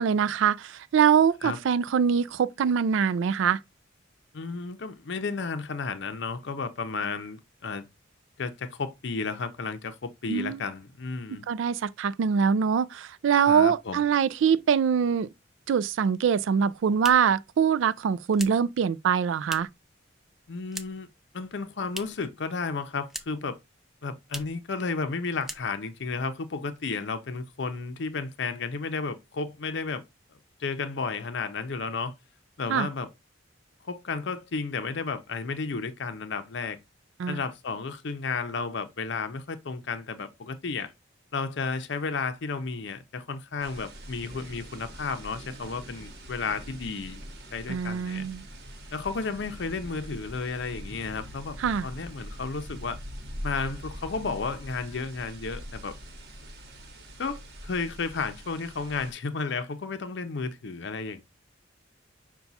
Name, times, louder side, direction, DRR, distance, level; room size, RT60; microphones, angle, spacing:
voice 1, 0.0-3.6 10.3-10.6 11.5-15.3 15.7-19.7 32.7-32.9 37.2-37.4 47.7-48.4 51.6-51.8, right 7 dB, 75° right, 0.3 m, -24 dB
voice 2, 4.3-7.9 8.4-11.5 13.5-14.0 20.5-21.1 21.3-23.6 24.0-30.0 30.6-32.1 32.6-33.1 33.8-36.8 37.3-40.9 41.3-47.2 47.5-48.3 48.9-53.0 53.4-56.0 57.2-61.2, left 4 dB, 65° left, 0.6 m, -33 dB
sound 1, 16.9-19.9 20.2-21.2 21.4-22.4 22.6-23.6 23.8-23.9 24.2-24.7 25.0-25.1 25.4-26.0, right 1 dB, ahead, 0.3 m, -42 dB
sound 2, 43.6-59.1, equal, 55° right, 1.0 m, -43 dB
5.8 x 2.3 x 4.0 m
head